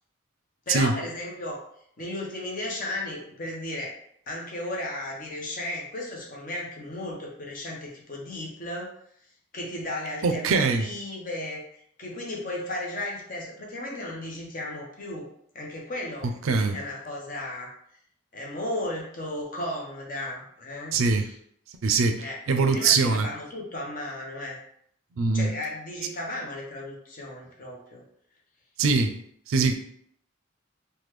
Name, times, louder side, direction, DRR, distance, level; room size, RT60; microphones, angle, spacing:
voice 1, 0.7-1.6 2.0-4.0 4.3-8.9 9.5-15.3 15.5-16.3 16.7-17.7 18.3-21.3 22.2-24.6 25.3-28.0, left 1 dB, 40° left, -2 dB, 0.7 m, -35 dB
voice 2, 10.2-10.9 16.4-16.8 20.9-21.3 21.8-23.3 25.2-25.5 28.8-29.1 29.5-29.7, right 4 dB, 80° right, 7 dB, 0.4 m, -22 dB
3.4 x 2.2 x 3.1 m, 0.66 s
head